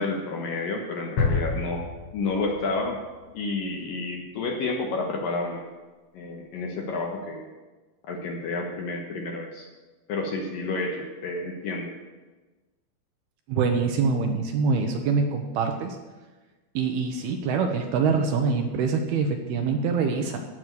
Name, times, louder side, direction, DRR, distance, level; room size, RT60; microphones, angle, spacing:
voice 1, 0.0-1.8 2.1-3.0 3.3-5.6 6.1-7.5 8.1-9.7 10.1-11.9, left 3 dB, 70° left, 1 dB, 2.4 m, -30 dB
sound 1, 1.2-3.1, left 4 dB, 85° left, 6.8 m, -28 dB
voice 2, 13.5-16.0 16.8-20.4, right 5 dB, 75° right, 4 dB, 2.6 m, -25 dB
15.5 x 6.2 x 8.1 m, 1.2 s
omnidirectional pair, 5.1 m